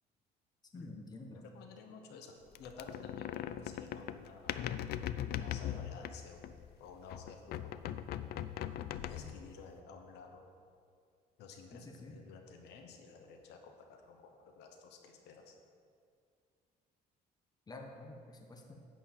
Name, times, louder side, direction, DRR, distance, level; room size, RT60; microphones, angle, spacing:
voice 1, 0.7-1.4 11.7-12.1 17.7-18.6, left 2 dB, 25° left, 2 dB, 1.1 m, -49 dB
voice 2, 1.5-7.7 9.1-10.4 11.4-15.6, left 5 dB, 90° left, 3 dB, 1.1 m, -53 dB
sound 1, 2.5-6.7 7.1-9.5, left 11 dB, 70° left, 0.4 m, -40 dB
10.5 x 4.2 x 7.4 m, 2.3 s
cardioid pair, 115°, 17 cm